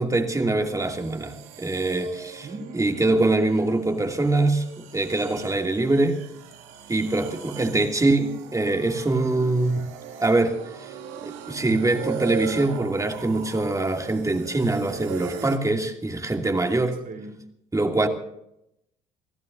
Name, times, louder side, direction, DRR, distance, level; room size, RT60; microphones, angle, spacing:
voice 1, 0.0-2.5 2.7-6.2 6.9-9.9 10.2-10.9 11.2-17.0 17.7-18.1, right 2 dB, 15° right, 2.7 m, -23 dB
sound 1, 0.8-15.6, right 9 dB, 70° right, 1.9 m, -40 dB
voice 2, 2.4-2.8 7.7-7.8 17.0-17.5, right 3 dB, 50° right, 4.2 m, -39 dB
29.0 x 16.0 x 2.7 m
hypercardioid pair, 60°, 19 cm